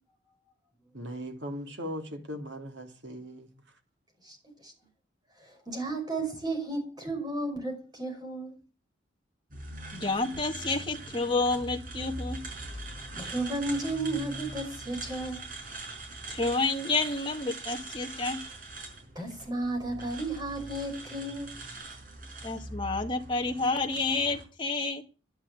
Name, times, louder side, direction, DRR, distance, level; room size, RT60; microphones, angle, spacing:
voice 1, 0.9-3.5, equal, 65° right, 2.7 m, -38 dB
voice 2, 5.4-8.6 13.1-15.4 19.2-21.6, right 2 dB, 20° right, 5.5 m, -33 dB
sound 1, 9.5-24.4, right 2 dB, 45° right, 5.8 m, -42 dB
voice 3, 9.9-12.4 16.3-18.4 22.4-25.0, left 3 dB, 25° left, 2.0 m, -29 dB
11.0 x 10.5 x 8.5 m
head